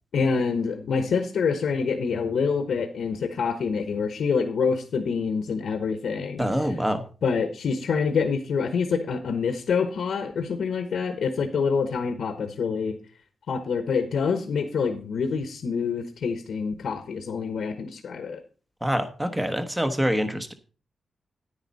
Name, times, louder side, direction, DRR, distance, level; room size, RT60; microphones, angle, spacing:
voice 1, 0.1-6.4 7.2-13.0 13.5-18.4, left 5 dB, 75° left, 8 dB, 1.2 m, -26 dB
voice 2, 6.4-7.1 18.8-20.5, equal, 10° right, 9 dB, 1.0 m, -25 dB
9.8 x 9.7 x 4.1 m, 0.36 s
wide cardioid pair, 145°, 0 cm